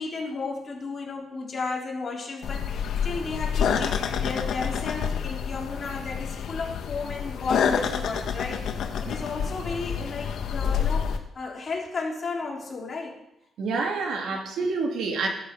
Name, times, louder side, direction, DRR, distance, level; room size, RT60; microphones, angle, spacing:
voice 1, 0.0-13.2 13.7-13.8 14.3-14.4, left 3 dB, 30° left, -2 dB, 4.0 m, -34 dB
sound 1, 2.4-11.2, left 7 dB, 75° left, 1.6 m, -28 dB
voice 2, 13.6-15.3, right 4 dB, 75° right, 2 dB, 3.0 m, -28 dB
16.5 x 12.5 x 5.6 m, 0.83 s
cardioid pair, 165°, 0 cm